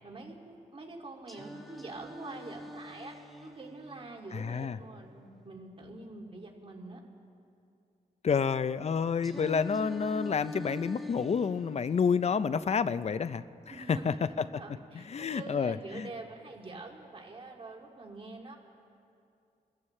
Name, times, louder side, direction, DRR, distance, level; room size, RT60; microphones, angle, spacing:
voice 1, 0.0-3.1 3.4-7.0 13.7-18.6, right 3 dB, 40° right, 0 dB, 2.6 m, -45 dB
Singing, 1.3-5.3 9.2-13.3, left 1 dB, ahead, 1.4 m, -46 dB
voice 2, 4.3-4.8 8.2-14.4 14.9-16.1, left 6 dB, 45° left, 14 dB, 0.6 m, -29 dB
29.0 x 14.5 x 3.3 m, 2.5 s
cardioid pair, 80°, 15 cm